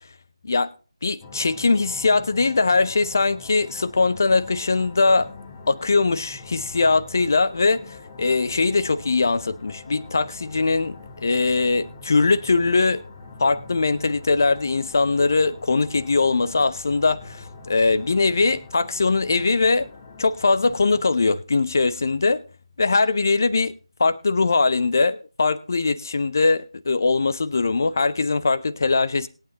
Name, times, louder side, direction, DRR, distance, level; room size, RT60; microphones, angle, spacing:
voice 1, 1.0-5.3 5.7-13.0 13.4-19.9 20.2-22.4 22.8-23.7 24.0-29.3, left 3 dB, 35° left, 0.6 m, -21 dB
sound 1, 1.2-21.0, left 3 dB, 15° left, 1.3 m, -43 dB
20.5 x 9.1 x 2.9 m
figure-of-eight pair, 165°, 3 cm